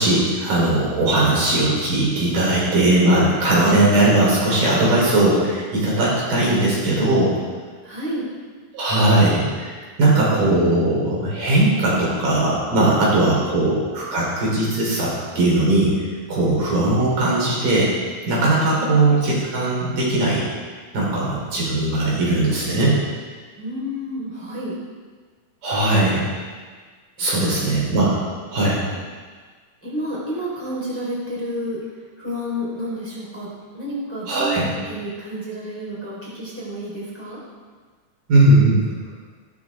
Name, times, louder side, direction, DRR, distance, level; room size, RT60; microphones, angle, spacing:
voice 1, 0.0-7.3 8.7-9.7 10.0-15.9 16.3-17.9 18.3-20.4 20.9-22.9 25.6-26.2 27.2-28.1 28.5-28.8 34.3-34.7 38.3-38.8, right 2 dB, 70° right, -5 dB, 5.5 m, -19 dB
voice 2, 7.8-8.3 18.8-19.0 23.6-24.7 27.2-27.6 28.9-29.0 29.8-31.8 32.2-33.5 33.7-37.4, equal, 5° left, -7 dB, 4.1 m, -30 dB
17.0 x 12.0 x 3.7 m, 1.5 s
omnidirectional pair, 3.9 m